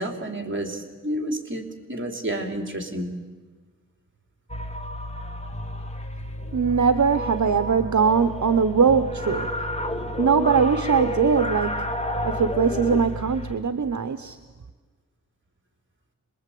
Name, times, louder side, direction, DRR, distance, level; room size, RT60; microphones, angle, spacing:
voice 1, 0.0-3.1, right 1 dB, 40° right, 4 dB, 3.3 m, -30 dB
sound 1, 4.5-13.6, equal, 20° left, 1.9 m, -31 dB
voice 2, 6.5-9.5 10.2-11.8 12.2-14.4, right 6 dB, 65° right, 10 dB, 0.9 m, -21 dB
27.0 x 21.5 x 8.5 m, 1.4 s
wide cardioid pair, 95°, 31 cm